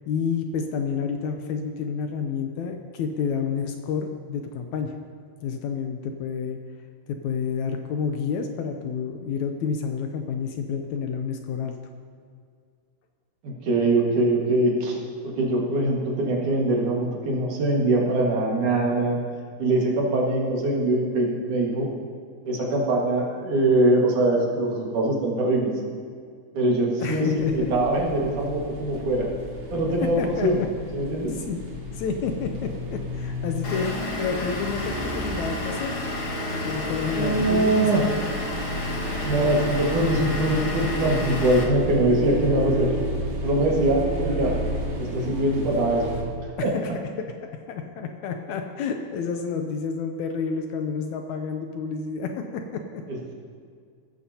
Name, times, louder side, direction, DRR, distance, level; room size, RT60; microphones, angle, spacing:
voice 1, 0.1-5.0 5.4-6.6 7.1-11.8 27.0-27.7 30.0-30.7 31.4-31.6 31.9-35.9 36.5-38.0 46.6-46.9 47.2-47.3 47.7-53.0, left 6 dB, 75° left, 5 dB, 1.9 m, -29 dB
voice 2, 13.6-15.0 15.2-19.2 19.6-21.9 22.5-25.7 26.5-29.3 29.7-30.6 30.9-31.3 37.1-38.0 39.2-43.0 43.4-44.5 44.9-46.0 46.6-46.7, right 1 dB, 70° right, -2 dB, 3.3 m, -22 dB
sound 1, 27.4-46.2, equal, 45° right, 2.5 m, -33 dB
Vehicle / Engine, 33.6-41.6, left 2 dB, 50° left, 2.4 m, -31 dB
16.5 x 14.0 x 2.9 m, 2.2 s
omnidirectional pair, 3.7 m